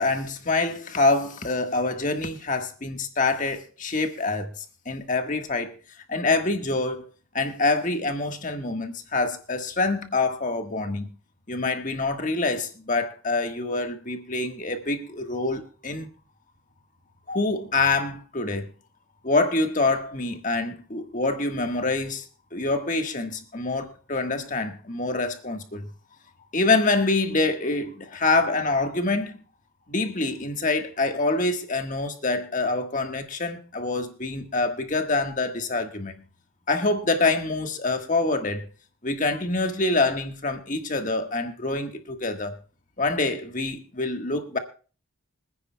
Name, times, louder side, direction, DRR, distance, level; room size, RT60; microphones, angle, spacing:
voice 1, 0.0-5.7 6.1-7.0 7.3-11.1 11.5-16.1 17.3-18.7 19.2-22.2 22.5-25.9 26.5-29.4 29.9-36.2 36.7-38.7 39.0-42.6 43.0-44.6, left 3 dB, 40° left, 1.4 m, -26 dB
25.5 x 9.8 x 2.2 m
head